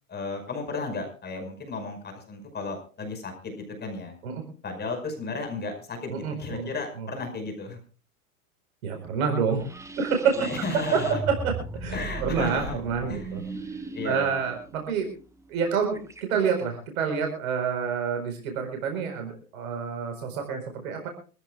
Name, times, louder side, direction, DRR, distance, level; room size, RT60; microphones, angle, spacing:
voice 1, 0.1-4.1 4.6-7.8 10.4-11.2 11.9-12.8 13.1-13.6 13.9-14.3, left 3 dB, 20° left, 5 dB, 5.4 m, -34 dB
voice 2, 6.1-6.7 7.0-7.1 8.8-9.6 10.0-10.4 10.9-11.0 11.4-15.1 15.5-21.1, right 6 dB, 70° right, 4 dB, 4.6 m, -28 dB
sound 1, 9.5-16.2, right 3 dB, 5° right, 1.3 m, -37 dB
25.5 x 15.0 x 2.4 m, 0.37 s
hypercardioid pair, 110°, 44 cm